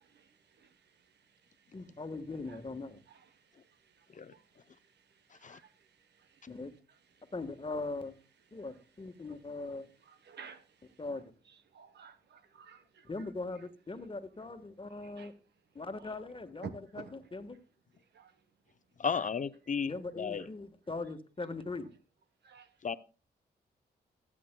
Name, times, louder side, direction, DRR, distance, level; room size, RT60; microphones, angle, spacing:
voice 1, 0.0-2.0 2.5-2.6 3.0-6.4 6.9-7.3 8.5-8.9 9.2-13.7 14.0-14.1 14.9-15.4 15.7-16.1 16.6-17.3 18.0-18.4 19.1-19.3 20.4-20.5 22.4-23.0, right 6 dB, 75° right, 1.0 m, -54 dB
voice 2, 1.7-3.0 6.5-6.7 7.3-8.2 8.5-9.9 11.0-11.3 13.1-15.3 15.7-16.7 16.9-17.6 19.9-21.9, left 3 dB, 30° left, 1.4 m, -40 dB
voice 3, 19.0-20.5 22.8-23.0, left 6 dB, 45° left, 0.6 m, -34 dB
24.5 x 8.5 x 2.2 m
cardioid pair, 60°, 18 cm